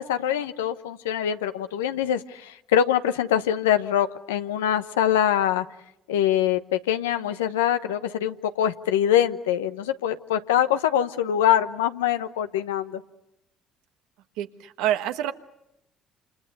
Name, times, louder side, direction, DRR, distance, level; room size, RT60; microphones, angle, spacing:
voice 1, 0.0-5.6 6.1-13.0, left 10 dB, 85° left, 10 dB, 1.0 m, -24 dB
voice 2, 14.4-15.3, right 12 dB, 75° right, 8 dB, 1.3 m, -27 dB
28.5 x 28.0 x 6.8 m, 0.85 s
hypercardioid pair, 60°, 0 cm